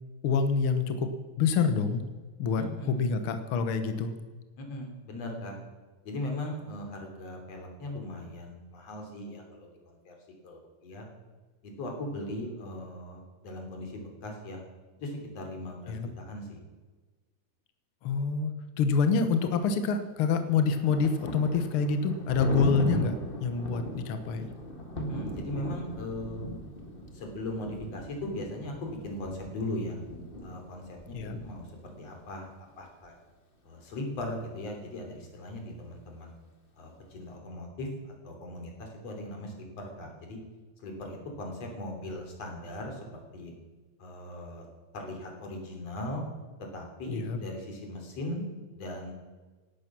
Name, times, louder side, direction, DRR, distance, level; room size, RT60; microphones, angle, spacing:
voice 1, 0.2-1.1 1.4-2.0 2.4-4.1 15.9-16.1 18.0-23.1 23.4-24.5 31.1-31.4 47.1-47.4, left 5 dB, 70° left, 8 dB, 1.3 m, -27 dB
voice 2, 2.5-3.0 4.6-5.5 6.1-10.1 10.4-11.1 11.6-14.6 15.0-16.6 25.0-26.4 27.1-30.0 30.4-32.5 32.8-33.2 33.6-36.3 36.8-37.9 38.2-40.4 40.8-43.1 43.3-43.5 44.0-44.6 44.9-46.2 46.7-48.4 48.8-49.1, left 1 dB, 50° left, 2 dB, 4.1 m, -39 dB
Thunder, 20.2-32.0, equal, 30° left, 0.9 m, -38 dB
18.0 x 12.0 x 6.1 m, 1.3 s
omnidirectional pair, 3.9 m